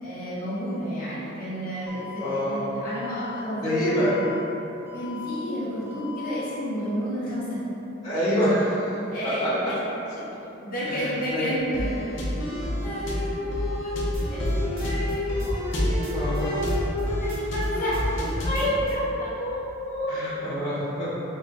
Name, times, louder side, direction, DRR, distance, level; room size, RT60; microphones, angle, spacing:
voice 1, 0.0-4.2 4.9-7.6 9.1-9.8 10.6-20.1, left 1 dB, 45° left, -11 dB, 1.3 m, -30 dB
Alarm, 1.9-2.4 2.9-3.4 3.9-4.4 4.9-5.4 5.9-6.4, left 7 dB, 10° right, 0.4 m, -40 dB
voice 2, 2.2-2.6 3.6-4.1 8.0-9.0 9.4-9.5 10.8-11.5 12.6-12.9 14.8-15.0 16.1-16.6 20.1-21.1, equal, 20° left, -14 dB, 1.1 m, -26 dB
sound 1, 11.7-18.7, equal, 65° left, 0.6 m, -29 dB
sound 2, 14.1-16.4 16.7-18.9, equal, 85° right, 0.8 m, -34 dB
6.0 x 2.2 x 2.5 m, 3.0 s
head